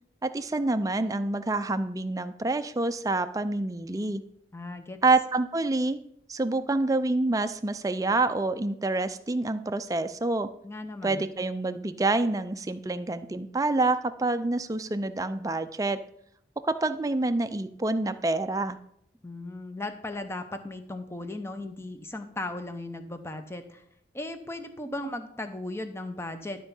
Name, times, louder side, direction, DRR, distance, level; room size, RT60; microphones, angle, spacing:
voice 1, 0.2-4.2 5.0-6.0 6.3-10.5 11.0-16.0 16.6-18.8, right 2 dB, 20° right, 10 dB, 0.4 m, -27 dB
voice 2, 4.5-5.0 10.6-11.2 19.2-23.8 24.1-26.7, left 2 dB, 15° left, 8 dB, 0.7 m, -37 dB
12.0 x 4.5 x 5.5 m, 0.72 s
head